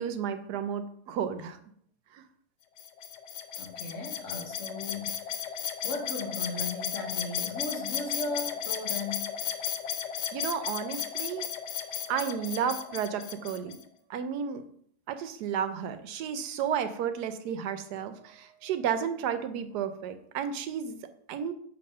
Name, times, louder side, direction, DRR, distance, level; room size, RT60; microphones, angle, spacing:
voice 1, 0.0-1.6 2.1-2.2 10.3-11.5 12.1-13.8 14.1-14.6 15.1-21.5, right 8 dB, 80° right, 10 dB, 1.2 m, -32 dB
sound 1, 2.8-13.8, left 8 dB, 90° left, 1.3 m, -35 dB
voice 2, 3.6-5.6 5.8-9.3, left 3 dB, 50° left, 2 dB, 1.3 m, -37 dB
6.8 x 2.9 x 5.4 m, 0.63 s
omnidirectional pair, 1.7 m